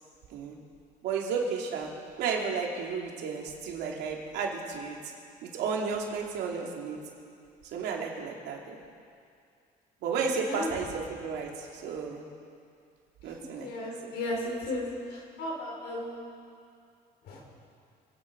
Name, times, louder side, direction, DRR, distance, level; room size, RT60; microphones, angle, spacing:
voice 1, 1.0-1.9 2.2-5.0 5.4-7.0 7.7-8.8 10.0-12.3 13.2-14.2, right 5 dB, 85° right, -1 dB, 2.8 m, -33 dB
voice 2, 13.5-14.8 15.1-16.3 17.3-17.4, left 1 dB, 80° left, -2 dB, 4.8 m, -35 dB
28.0 x 9.8 x 5.2 m, 2.4 s
cardioid pair, 110°, 17 cm